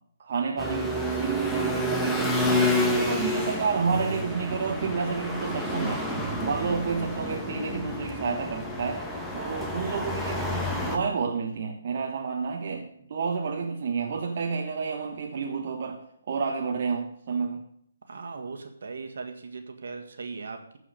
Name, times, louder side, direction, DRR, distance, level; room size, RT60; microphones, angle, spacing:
voice 1, 0.2-2.4 2.7-6.1 6.4-9.0 9.3-17.6, right 5 dB, 50° right, 1 dB, 1.2 m, -30 dB
sound 1, 0.6-11.0, left 1 dB, 5° left, 1.2 m, -29 dB
voice 2, 18.1-20.8, right 4 dB, 70° right, 5 dB, 1.8 m, -38 dB
14.5 x 4.9 x 6.7 m, 0.68 s
hypercardioid pair, 155°, 0 cm